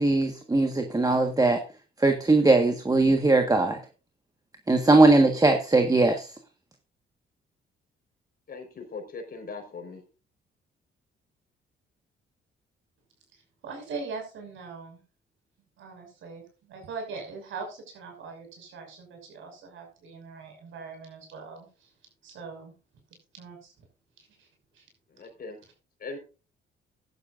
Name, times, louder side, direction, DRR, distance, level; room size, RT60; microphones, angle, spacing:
voice 1, 0.0-1.6 2.0-3.8 4.7-6.3, right 2 dB, 20° right, 5 dB, 1.5 m, -20 dB
voice 2, 8.5-10.0 25.1-25.6 26.0-26.2, left 4 dB, 50° left, 4 dB, 4.7 m, -39 dB
voice 3, 13.3-15.0 15.8-21.9 22.2-22.7 23.3-23.9 24.2-24.5 24.7-24.8, right 4 dB, 75° right, 4 dB, 6.0 m, -41 dB
15.0 x 11.0 x 2.6 m, 0.33 s
cardioid pair, 90°, 20 cm